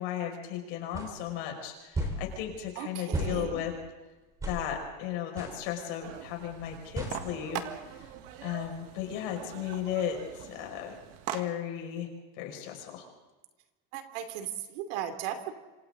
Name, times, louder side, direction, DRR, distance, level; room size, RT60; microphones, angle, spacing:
voice 1, 0.0-3.7 4.4-7.6 7.9-8.1 8.4-11.0 11.3-12.1 12.4-13.0, left 10 dB, 65° left, 2 dB, 6.0 m, -35 dB
sound 1, 0.9-1.1 1.9-2.2 3.1-3.4 4.4-4.6 5.4-5.6 7.0-7.2, right 1 dB, 10° right, 3.7 m, -32 dB
voice 2, 2.8-3.6 13.9-15.5, right 10 dB, 70° right, 7 dB, 2.9 m, -36 dB
sound 2, 6.0-11.4, right 11 dB, 50° right, 1.7 m, -42 dB
27.0 x 26.5 x 3.9 m, 1.2 s
cardioid pair, 175°, 31 cm